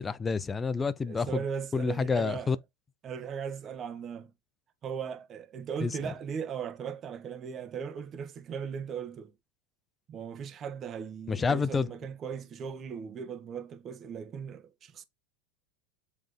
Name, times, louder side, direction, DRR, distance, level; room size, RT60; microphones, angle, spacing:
voice 1, 0.0-1.4 1.7-2.6 5.8-5.9 11.3-11.9, left 5 dB, 20° left, 0.7 m, -28 dB
voice 2, 1.0-2.5 3.0-4.3 4.8-9.3 10.1-15.0, right 7 dB, 35° right, 1.4 m, -38 dB
7.8 x 3.5 x 5.1 m
hypercardioid pair, 110°, 0 cm